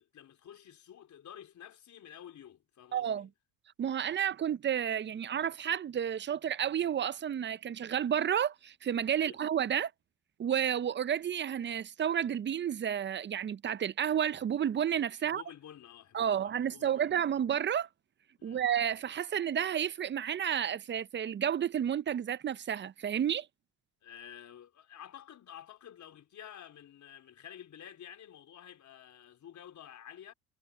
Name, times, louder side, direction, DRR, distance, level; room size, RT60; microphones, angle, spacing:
voice 1, 0.0-3.3 9.2-9.4 15.2-17.3 18.4-18.6 24.0-30.3, left 10 dB, 45° left, 4.2 m, -51 dB
voice 2, 2.9-3.3 3.8-9.9 10.4-15.4 16.1-17.9 18.4-23.5, right 9 dB, 30° right, 0.6 m, -31 dB
supercardioid pair, 90°, 40 cm